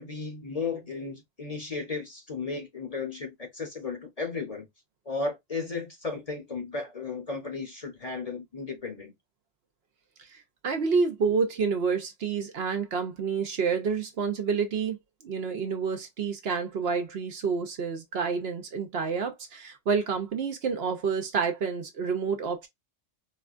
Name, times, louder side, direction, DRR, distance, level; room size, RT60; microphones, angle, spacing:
voice 1, 0.0-4.7 5.1-9.1, left 4 dB, 35° left, 0.8 m, -34 dB
voice 2, 10.2-15.0 15.2-22.7, right 5 dB, 60° right, 0.9 m, -29 dB
4.2 x 2.2 x 2.4 m
omnidirectional pair, 1.2 m